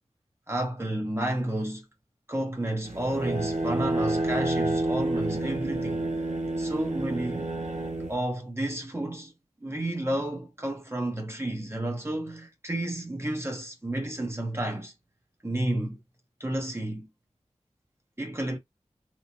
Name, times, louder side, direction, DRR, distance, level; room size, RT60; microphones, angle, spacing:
voice 1, 0.5-1.8 2.3-6.0 6.6-7.5 8.1-9.3 9.6-14.9 15.4-16.0 16.4-17.1 18.2-18.6, right 1 dB, 20° right, 0.7 m, -31 dB
sound 1, 2.8-8.2, right 2 dB, 80° right, 0.8 m, -29 dB
2.9 x 2.1 x 2.5 m
wide cardioid pair, 65°, 12 cm